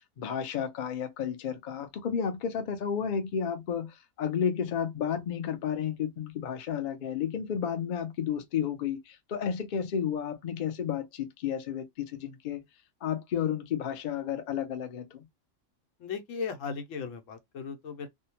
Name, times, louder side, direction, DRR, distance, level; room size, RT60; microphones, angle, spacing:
voice 1, 0.2-3.9 4.2-12.6 13.0-15.2, left 8 dB, 55° left, 0.5 m, -32 dB
voice 2, 16.0-18.1, left 5 dB, 85° left, 1.0 m, -37 dB
2.7 x 2.1 x 2.8 m
omnidirectional pair, 1.3 m